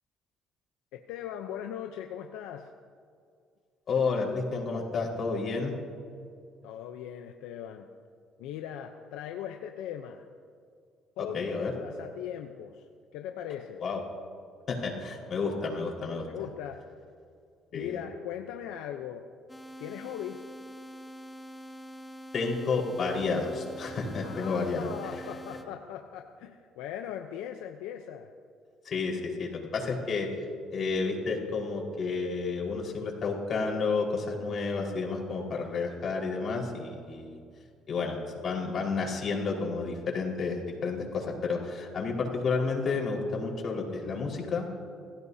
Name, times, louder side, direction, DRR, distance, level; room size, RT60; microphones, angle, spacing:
voice 1, 0.9-2.7 6.6-7.9 8.4-10.3 11.2-13.8 16.2-16.8 17.7-19.2 19.8-20.5 24.2-28.3, left 10 dB, 85° left, 5 dB, 0.7 m, -39 dB
voice 2, 3.9-5.7 11.3-11.7 13.8-14.0 14.7-16.3 17.7-18.0 22.3-24.9 28.8-30.3 30.7-37.4 37.9-44.7, left 4 dB, 50° left, -1 dB, 4.8 m, -31 dB
sound 1, 19.5-25.7, equal, 15° left, 1.7 m, -45 dB
28.5 x 16.0 x 2.8 m, 2.3 s
supercardioid pair, 85°, 0 cm